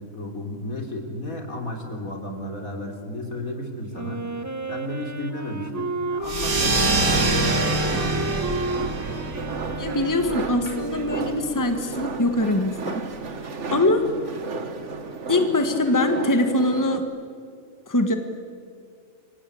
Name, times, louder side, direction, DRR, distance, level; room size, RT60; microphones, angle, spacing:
voice 1, 0.0-4.3 4.7-8.2, left 1 dB, 75° left, 3 dB, 4.1 m, -32 dB
Wind instrument woodwind instrument, 3.9-11.6, right 2 dB, 10° right, 1.3 m, -32 dB
sound 1, 6.2-11.3, right 2 dB, 90° right, 2.9 m, -25 dB
sound 2, 7.0-17.0, right 4 dB, 55° right, 1.8 m, -34 dB
voice 2, 9.8-13.0 13.7-14.0 15.3-17.0 17.9-18.2, left 2 dB, 15° left, 6 dB, 1.6 m, -22 dB
28.5 x 23.5 x 8.7 m, 2.3 s
omnidirectional pair, 1.5 m